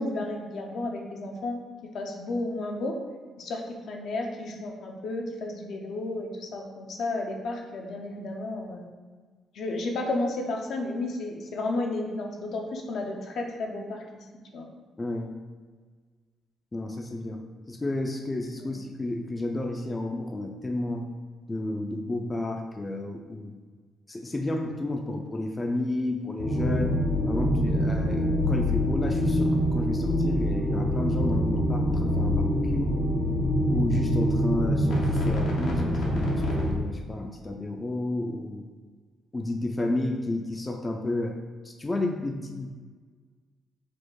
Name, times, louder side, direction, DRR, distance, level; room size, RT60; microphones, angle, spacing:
voice 1, 0.0-2.9 3.4-8.9 9.5-14.2 14.5-14.7 18.6-18.7, left 2 dB, 70° left, 1 dB, 0.7 m, -32 dB
voice 2, 15.0-15.3 16.7-17.4 17.7-21.1 21.5-23.5 24.1-27.0 27.3-33.0 33.7-38.6 39.3-41.4 41.6-42.7, left 2 dB, 20° left, 3 dB, 0.4 m, -31 dB
sound 1, 26.4-36.7, equal, 85° left, 0.9 m, -25 dB
4.2 x 2.4 x 4.7 m, 1.5 s
cardioid pair, 90°, 0 cm